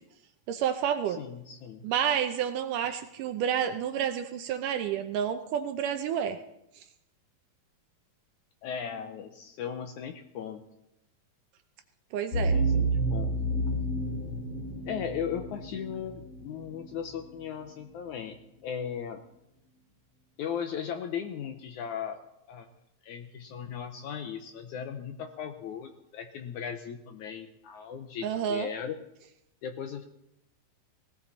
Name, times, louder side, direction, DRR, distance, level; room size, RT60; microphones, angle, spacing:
voice 1, 0.5-1.2 1.8-6.4 12.1-12.6 28.2-28.7, right 9 dB, 75° right, 8 dB, 2.2 m, -29 dB
voice 2, 1.1-1.8 8.6-10.6 12.3-13.3 14.9-19.2 20.4-22.2 22.5-22.7 23.0-29.0 29.6-30.1, left 8 dB, 70° left, 7 dB, 2.0 m, -37 dB
sound 1, 12.3-17.1, right 2 dB, 35° left, 2.9 m, -30 dB
18.5 x 17.5 x 4.1 m, 0.82 s
omnidirectional pair, 4.1 m